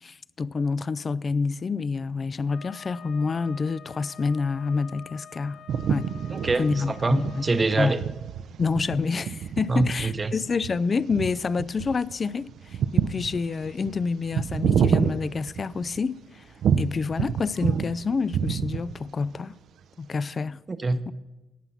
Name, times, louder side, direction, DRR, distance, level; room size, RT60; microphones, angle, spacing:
voice 1, 0.0-5.6 5.9-6.1 6.6-7.4 7.8-7.9 8.6-16.4 16.8-19.6 20.0-20.6, left 4 dB, 35° left, 0.3 m, -28 dB
Wind instrument woodwind instrument, 2.5-7.6, left 7 dB, 55° left, 0.8 m, -47 dB
sound 1, 5.7-16.1 16.6-18.0 18.2-19.1, right 7 dB, 70° right, 0.5 m, -28 dB
voice 2, 6.3-8.0 9.7-10.3 20.7-21.1, right 3 dB, 30° right, 0.8 m, -25 dB
17.5 x 5.9 x 5.6 m
cardioid pair, 90°, 0 cm